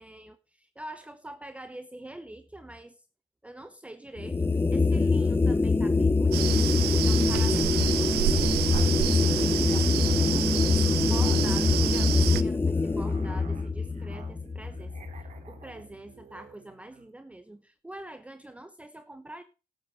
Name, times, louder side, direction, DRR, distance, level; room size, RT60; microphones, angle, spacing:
voice 1, 0.0-3.0 3.4-8.5 11.0-14.9 15.5-19.4, right 1 dB, 5° right, 0.9 m, -45 dB
sound 1, 4.2-15.5, left 4 dB, 15° left, 0.5 m, -24 dB
sound 2, 6.3-12.4, right 14 dB, 70° right, 0.7 m, -29 dB
Musical instrument, 7.0-17.1, right 6 dB, 45° right, 2.7 m, -53 dB
voice 2, 8.3-10.8 11.1-11.8, left 4 dB, 35° left, 3.5 m, -42 dB
12.0 x 8.0 x 6.2 m
cardioid pair, 110°, 17 cm